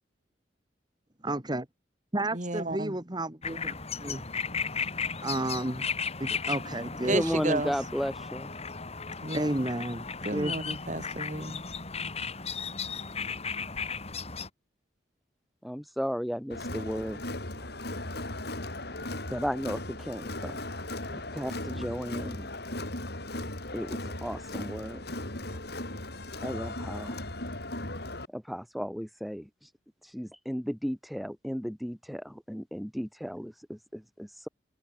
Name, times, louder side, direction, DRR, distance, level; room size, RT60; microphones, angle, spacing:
voice 1, 1.2-1.6 2.1-3.7 4.0-4.2 5.2-5.9 6.2-7.4 9.3-10.1 10.3-10.5, right 1 dB, 25° right, 2.2 m, -31 dB
voice 2, 2.3-2.9 7.0-7.7 9.2-9.6 10.2-11.6, right 2 dB, 45° right, 3.5 m, -32 dB
sound 1, 3.4-14.5, left 5 dB, 35° left, 3.6 m, -35 dB
voice 3, 7.1-8.5 15.6-17.2 17.6-17.7 19.3-20.6 21.1-22.5 23.7-25.1 26.4-27.2 28.3-29.5 30.1-34.5, equal, ahead, 1.8 m, -34 dB
Crowd, 16.5-28.3, left 1 dB, 65° left, 7.8 m, -37 dB
head